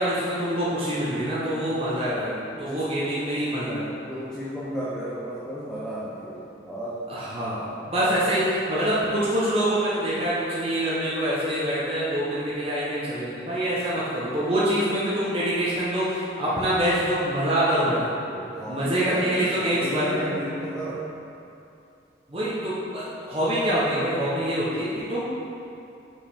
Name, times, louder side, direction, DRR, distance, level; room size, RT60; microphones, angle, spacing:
voice 1, 0.0-3.9 7.1-18.1 18.7-20.2 22.3-25.2, right 1 dB, 30° right, -9 dB, 0.9 m, -25 dB
voice 2, 4.1-7.0 8.0-8.2 18.3-21.0, equal, 5° left, -8 dB, 0.6 m, -33 dB
5.3 x 4.8 x 4.4 m, 2.7 s
head